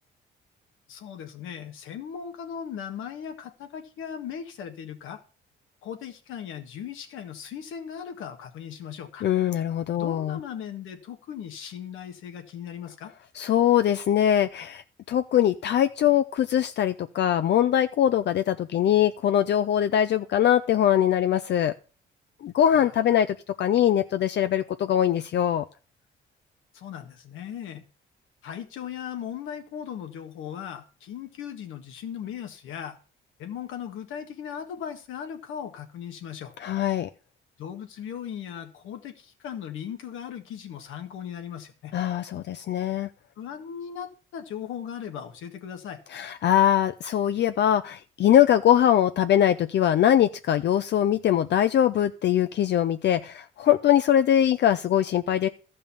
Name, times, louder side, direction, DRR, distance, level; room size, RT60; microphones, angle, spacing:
voice 1, 0.9-5.2 5.8-9.3 10.0-13.1 22.7-22.8 23.1-23.2 26.7-27.8 28.4-33.0 33.4-36.5 37.6-41.9 43.4-46.0, left 8 dB, 85° left, 6 dB, 1.7 m, -38 dB
voice 2, 9.2-10.4 13.4-14.8 15.1-21.7 22.4-25.6 36.6-37.1 41.9-43.1 46.1-55.5, left 10 dB, 60° left, 10 dB, 0.6 m, -22 dB
13.0 x 5.5 x 7.0 m, 0.37 s
cardioid pair, 90°, 20 cm